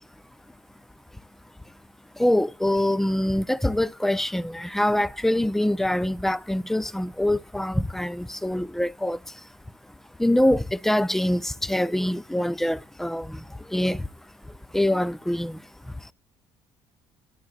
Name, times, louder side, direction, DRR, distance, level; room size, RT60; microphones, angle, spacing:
voice 1, 2.2-9.2 10.2-13.4 13.7-14.0 14.7-15.6, left 1 dB, 5° left, 0.5 m, -24 dB
13.5 x 9.5 x 2.3 m
supercardioid pair, 75°, 10 cm